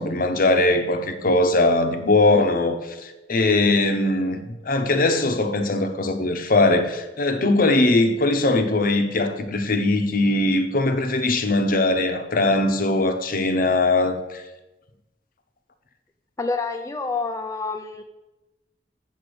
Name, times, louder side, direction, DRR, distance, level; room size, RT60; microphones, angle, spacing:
voice 1, 0.0-4.4 4.7-14.4, left 2 dB, 55° left, 0.8 m, -20 dB
voice 2, 16.4-18.0, left 3 dB, 20° left, 0.4 m, -28 dB
7.7 x 7.2 x 5.1 m
head